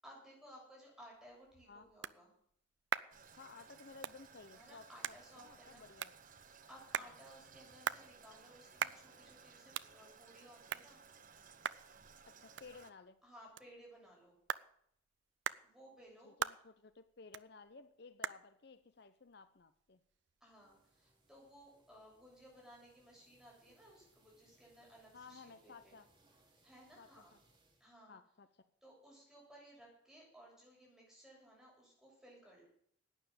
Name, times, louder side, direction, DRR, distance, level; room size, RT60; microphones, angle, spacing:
voice 1, 0.0-2.3 4.5-5.8 6.7-11.0 13.2-14.4 15.6-16.3 20.4-26.0 26.6-27.4 27.8-28.2 28.8-32.6, equal, 5° right, -3 dB, 6.9 m, -59 dB
sound 1, 1.1-20.4, right 8 dB, 70° right, 0.5 m, -46 dB
Toilet flush, 3.1-12.9, right 6 dB, 45° right, 1.0 m, -60 dB
voice 2, 3.3-6.1 7.0-7.1 12.3-13.2 16.2-20.0 25.1-26.1 27.0-27.1 28.1-28.7, left 4 dB, 60° left, 11 dB, 0.7 m, -56 dB
sound 2, 20.4-27.9, right 2 dB, 25° right, 3.1 m, -72 dB
11.5 x 9.4 x 8.9 m, 0.67 s
head